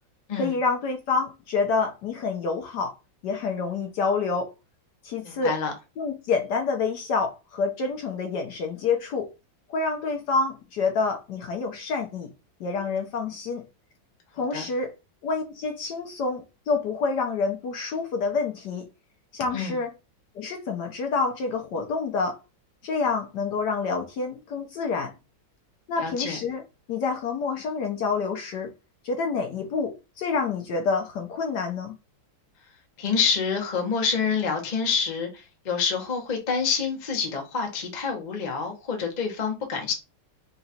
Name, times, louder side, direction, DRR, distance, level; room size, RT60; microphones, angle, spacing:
voice 1, 0.4-2.9 3.2-4.5 5.0-5.6 6.0-9.3 9.7-12.3 12.6-13.6 14.4-14.9 15.2-18.9 19.3-19.9 20.4-22.4 22.8-25.1 25.9-26.6 26.9-28.7 29.0-32.0, left 4 dB, 65° left, 1.2 m, -27 dB
voice 2, 5.2-5.7 14.5-14.6 19.5-19.8 26.0-26.4 33.0-39.9, left 6 dB, 35° left, 0.7 m, -27 dB
3.9 x 2.4 x 4.1 m
omnidirectional pair, 2.2 m